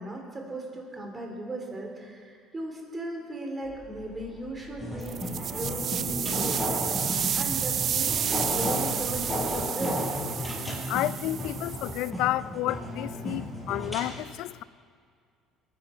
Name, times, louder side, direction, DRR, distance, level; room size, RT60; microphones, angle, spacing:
voice 1, 0.0-5.2 5.6-6.6 7.3-10.0, right 1 dB, 20° right, 3.2 m, -37 dB
sound 1, 3.6-9.6, left 4 dB, 40° left, 3.3 m, -48 dB
sound 2, 4.8-14.1, equal, 5° left, 5.3 m, -33 dB
sound 3, 5.0-12.1, right 8 dB, 45° right, 0.5 m, -31 dB
voice 2, 10.9-14.6, left 15 dB, 70° left, 0.4 m, -30 dB
22.0 x 10.0 x 5.6 m
cardioid pair, 120°, 0 cm